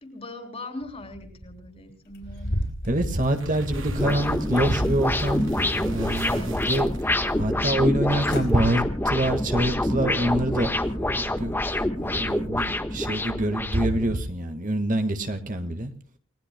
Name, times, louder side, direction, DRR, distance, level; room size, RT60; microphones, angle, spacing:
voice 1, 0.0-2.6 6.2-6.6, left 2 dB, 30° left, 3.5 m, -40 dB
sound 1, 2.1-4.1 4.6-5.4 5.8-6.6 7.1-7.2 7.9-8.0 8.2-8.5 9.0-9.3 9.7-9.8, equal, 60° left, 5.0 m, -34 dB
voice 2, 2.9-6.9 7.4-15.9, right 1 dB, 40° right, 1.7 m, -26 dB
sound 2, 3.2-7.4, right 1 dB, 70° right, 3.3 m, -39 dB
sound 3, 4.0-14.0, left 1 dB, 10° left, 1.3 m, -26 dB
29.5 x 19.5 x 2.2 m
head